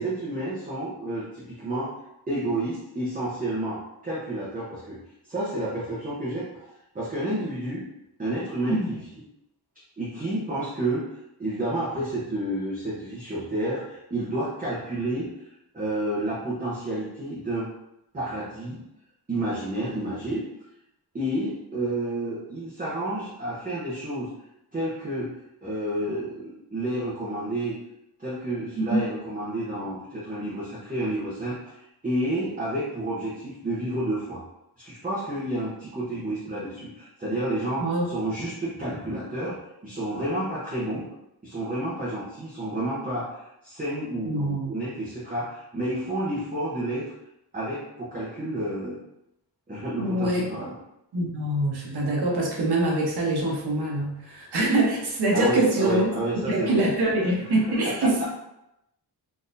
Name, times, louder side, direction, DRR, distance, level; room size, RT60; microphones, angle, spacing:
voice 1, 0.0-1.9 2.3-5.0 5.3-6.7 6.9-7.8 8.2-9.0 10.0-17.7 18.1-18.8 19.3-20.4 21.1-24.3 24.7-25.3 25.6-27.8 28.2-34.4 34.8-41.0 41.4-47.1 47.5-49.0 49.7-50.7 55.3-58.2, right 1 dB, 20° right, -8 dB, 0.8 m, -30 dB
voice 2, 44.2-44.7 50.0-50.4 51.1-56.1 56.3-58.2, right 1 dB, 75° right, -2 dB, 1.0 m, -24 dB
3.8 x 2.7 x 2.6 m, 0.85 s
wide cardioid pair, 150°, 39 cm